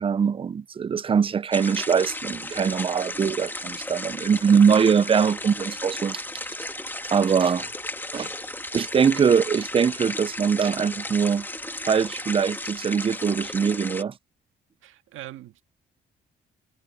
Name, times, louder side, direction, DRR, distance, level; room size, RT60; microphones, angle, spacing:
voice 1, 0.0-6.2 7.1-7.7 8.1-8.3 8.7-11.5 11.8-14.1, right 6 dB, 30° right, 0.4 m, -22 dB
sound 1, 1.5-14.0, left 1 dB, 10° left, 1.7 m, -34 dB
voice 2, 14.8-15.6, right 14 dB, 85° right, 1.9 m, -41 dB
cardioid pair, 90°, 20 cm